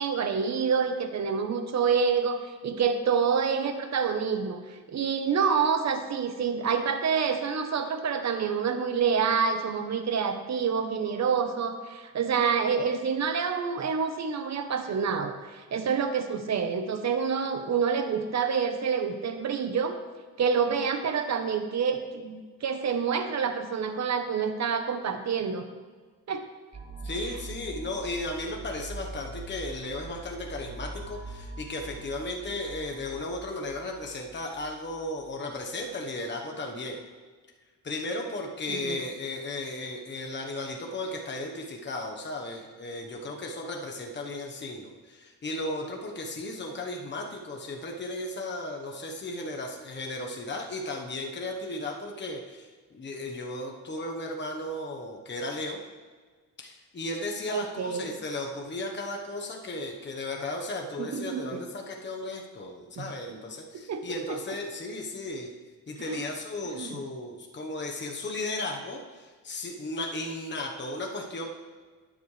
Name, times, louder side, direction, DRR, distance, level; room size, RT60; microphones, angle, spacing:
voice 1, 0.0-4.6 4.9-20.0 20.4-25.6 26.3-26.4 38.7-39.0 57.5-58.1 61.0-61.4 63.0-63.4 63.9-64.4 66.1-66.2 66.7-67.0, right 6 dB, 50° right, 7 dB, 1.1 m, -27 dB
sound 1, 26.7-35.4, right 1 dB, 30° right, 2.8 m, -43 dB
voice 2, 27.0-37.0 37.8-55.8 56.6-65.5 65.9-71.4, left 2 dB, 30° left, 1 dB, 1.3 m, -35 dB
12.5 x 9.9 x 3.4 m, 1.4 s
cardioid pair, 105°, 34 cm